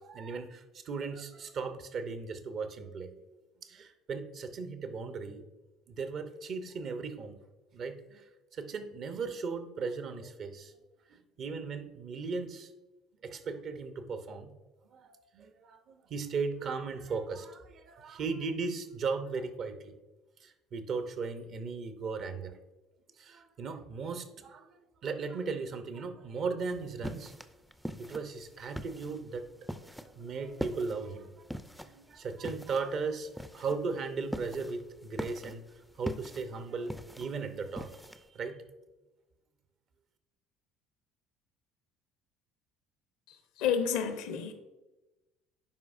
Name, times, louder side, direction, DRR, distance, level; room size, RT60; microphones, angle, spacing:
voice 1, 0.0-3.2 3.6-5.5 5.9-7.4 7.7-8.3 8.5-10.8 11.1-12.7 13.2-14.5 14.9-19.9 20.4-22.6 23.2-27.3 28.0-29.4 30.1-31.5 31.8-35.6 36.0-38.0 38.3-38.6, right 4 dB, 50° right, 9 dB, 0.8 m, -37 dB
sound 1, 26.6-38.3, equal, ahead, 0.5 m, -42 dB
voice 2, 43.3-44.5, left 7 dB, 70° left, 9 dB, 0.7 m, -31 dB
11.0 x 4.7 x 2.6 m, 1.1 s
hypercardioid pair, 60°, 0 cm